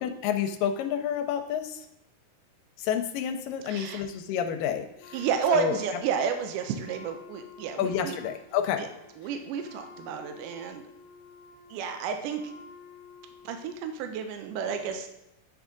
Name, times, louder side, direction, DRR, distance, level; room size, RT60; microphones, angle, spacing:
voice 1, 0.0-1.9 2.8-5.2 5.5-5.8 7.8-8.8, left 9 dB, 85° left, 6 dB, 2.2 m, -29 dB
voice 2, 3.7-4.0 5.1-8.2 8.8-8.9 9.2-10.8 11.7-12.5 13.4-15.1, right 7 dB, 80° right, 6 dB, 2.1 m, -31 dB
Wind instrument woodwind instrument, 5.0-13.8, left 4 dB, 70° left, 1.9 m, -50 dB
9.7 x 3.6 x 3.7 m, 0.89 s
omnidirectional pair, 3.9 m